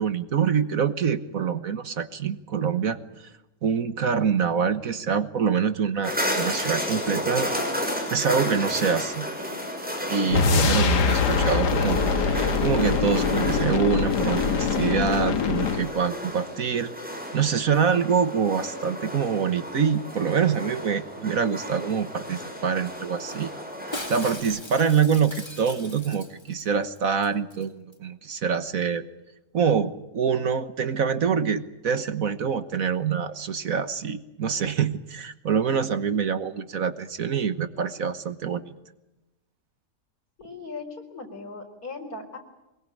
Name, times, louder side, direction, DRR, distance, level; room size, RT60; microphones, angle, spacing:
voice 1, 0.0-3.3 3.6-7.6 8.1-9.3 10.1-16.9 17.3-23.5 23.9-29.0 29.5-38.7, right 6 dB, 60° right, 11 dB, 1.5 m, -25 dB
sound 1, 6.0-24.4, equal, 5° right, 6.3 m, -33 dB
sound 2, 10.3-15.9, left 5 dB, 80° left, 2.0 m, -23 dB
Shatter, 23.9-26.7 27.0-27.1 27.2-27.6 27.9-28.0, left 1 dB, 15° left, 2.2 m, -39 dB
voice 2, 40.4-42.4, left 3 dB, 65° left, 5 dB, 5.0 m, -38 dB
24.0 x 22.5 x 8.6 m, 0.94 s
omnidirectional pair, 1.7 m